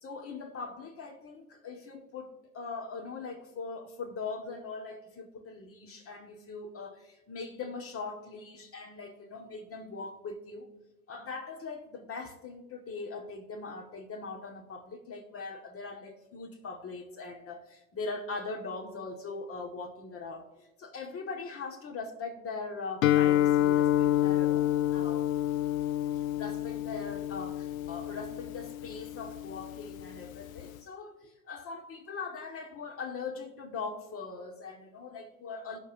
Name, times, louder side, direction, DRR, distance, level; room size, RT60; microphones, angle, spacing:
voice 1, 0.0-10.7 11.1-25.3 26.1-35.8, left 4 dB, 35° left, 1.7 m, -41 dB
Guitar, 23.0-30.8, left 12 dB, 75° left, 0.5 m, -28 dB
18.5 x 6.4 x 2.6 m
hypercardioid pair, 75°, 41 cm